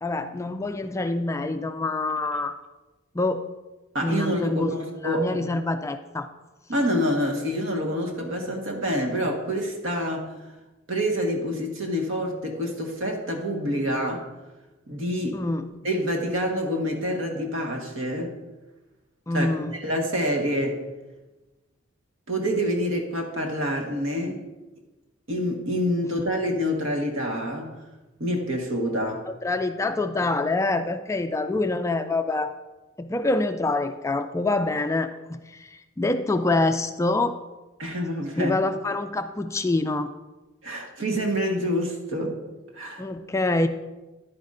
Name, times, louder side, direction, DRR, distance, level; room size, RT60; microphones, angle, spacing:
voice 1, 0.0-2.5 3.1-3.5 4.0-4.7 5.0-6.3 15.3-15.7 19.3-19.8 29.4-32.5 33.0-37.3 38.4-40.1 43.0-43.7, left 2 dB, 15° left, 8 dB, 0.3 m, -26 dB
voice 2, 3.9-5.4 6.7-10.3 10.9-14.2 14.9-15.5 15.8-18.4 19.3-20.8 22.3-24.4 25.3-27.7 28.2-29.3 37.8-38.6 40.6-42.4 42.7-43.0, equal, 65° right, 1 dB, 1.4 m, -27 dB
10.5 x 9.5 x 2.5 m, 1.1 s
head